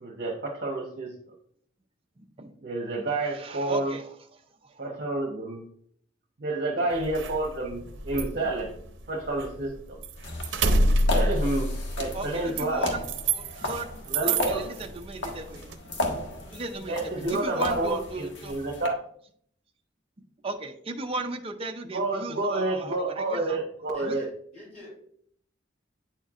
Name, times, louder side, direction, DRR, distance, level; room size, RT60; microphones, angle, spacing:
voice 1, 0.0-1.1 2.6-4.0 4.8-5.6 6.4-8.7 9.1-10.0 11.1-12.9 14.1-14.7 16.9-19.0 21.8-24.3, right 2 dB, 55° right, -1 dB, 1.0 m, -29 dB
voice 2, 2.2-2.5 3.3-4.1 4.6-4.8 12.1-15.6 16.5-17.0 17.3-18.6 20.4-23.6 24.0-24.2, right 2 dB, 30° right, 3 dB, 0.6 m, -36 dB
sound 1, 6.9-9.7 10.0-13.8 14.1-14.8 15.3-15.7, right 2 dB, 85° right, 0.7 m, -27 dB
sound 2, 10.2-18.9, left 2 dB, 75° left, 1.3 m, -35 dB
voice 3, 23.9-24.9, left 1 dB, 50° left, -6 dB, 2.6 m, -45 dB
8.9 x 4.5 x 2.4 m, 0.63 s
head